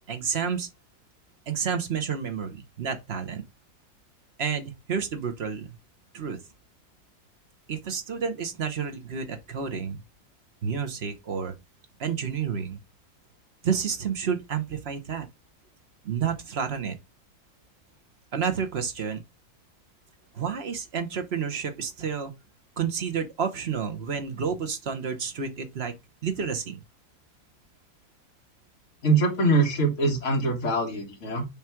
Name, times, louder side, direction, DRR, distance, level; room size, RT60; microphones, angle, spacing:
voice 1, 0.1-0.7 1.5-3.4 4.4-5.8 6.1-6.4 7.7-10.0 10.6-11.5 12.0-12.8 13.6-15.3 16.0-17.0 18.3-19.2 20.3-22.3 22.8-25.9 26.2-26.8, right 6 dB, 45° right, 1.0 m, -30 dB
voice 2, 29.0-31.5, right 2 dB, 45° left, 2.0 m, -23 dB
7.0 x 3.2 x 4.5 m
omnidirectional pair, 1.8 m